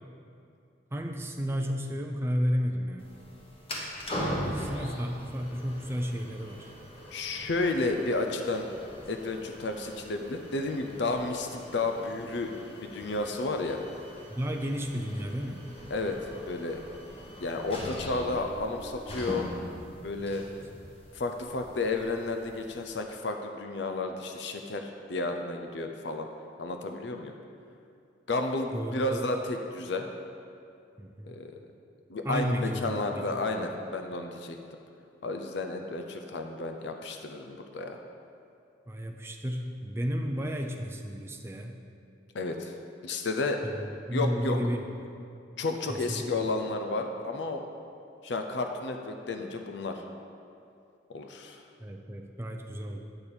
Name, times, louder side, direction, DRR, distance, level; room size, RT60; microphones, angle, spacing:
voice 1, 0.9-3.1 4.4-6.7 14.3-15.7 20.3-20.5 28.7-29.3 31.0-31.4 32.2-33.7 38.9-41.8 43.6-45.1 45.9-46.3 51.8-53.0, equal, 15° right, 3 dB, 0.4 m, -33 dB
sound 1, 3.0-22.8, equal, 30° left, 1.0 m, -41 dB
voice 2, 7.1-8.7 9.1-12.5 12.8-13.8 15.9-16.2 16.5-16.8 17.4-19.5 20.0-20.4 21.1-26.3 26.6-27.3 28.3-30.1 31.2-31.5 32.1-34.6 35.2-38.0 42.3-42.7 43.0-43.6 44.1-44.6 45.6-47.6 48.2-50.0 51.1-51.6, left 2 dB, 65° left, 5 dB, 0.6 m, -32 dB
8.7 x 4.4 x 6.7 m, 2.5 s
head